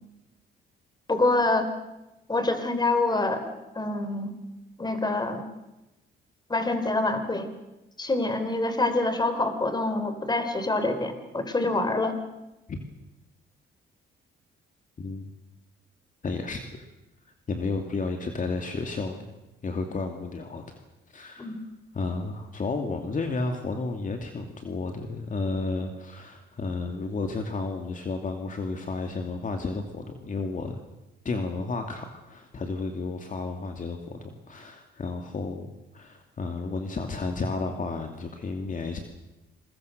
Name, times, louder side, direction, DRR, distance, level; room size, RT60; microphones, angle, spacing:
voice 1, 1.1-1.7 2.3-3.4 3.8-4.3 4.8-5.4 6.5-7.5 8.0-12.2 21.4-21.6, left 2 dB, 20° left, 8 dB, 3.8 m, -26 dB
voice 2, 15.0-15.3 16.2-16.6 17.5-19.3 19.6-20.8 21.1-21.6 21.9-30.8 31.2-39.0, left 3 dB, 40° left, 4 dB, 2.5 m, -32 dB
27.0 x 22.0 x 6.6 m, 1.0 s
cardioid pair, 90°, 20 cm